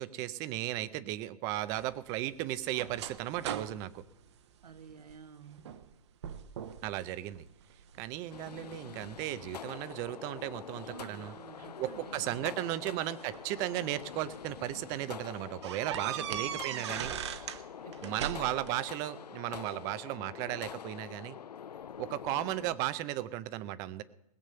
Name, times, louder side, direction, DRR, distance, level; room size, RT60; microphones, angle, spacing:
voice 1, 0.0-4.0 6.8-7.5 8.0-11.3 11.8-17.1 18.0-21.4 22.0-24.0, right 14 dB, 15° right, 16 dB, 0.4 m, -35 dB
sound 1, 1.7-5.2 5.6-5.9 6.2-6.9 7.3-8.1 8.7-10.1 11.3-11.4 12.6-14.0 14.5-14.7 15.0-15.1 15.6-17.6 17.9-18.8, right 9 dB, 45° right, 0.9 m, -40 dB
voice 2, 4.6-5.7 10.8-13.0 16.1-17.3 17.8-18.5, right 6 dB, 80° right, 10 dB, 1.3 m, -51 dB
sound 2, 8.3-22.8, left 8 dB, 85° left, 0.5 m, -46 dB
20.0 x 7.4 x 6.6 m, 0.85 s
hypercardioid pair, 145°, 20 cm